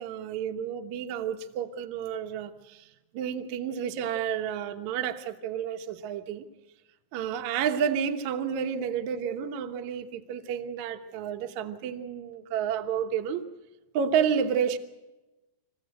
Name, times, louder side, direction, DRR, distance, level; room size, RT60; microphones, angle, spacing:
voice 1, 0.0-2.8 3.1-6.4 7.1-13.4 13.9-14.8, right 8 dB, 65° right, 2.0 m, -30 dB
28.0 x 15.5 x 8.0 m
omnidirectional pair, 5.0 m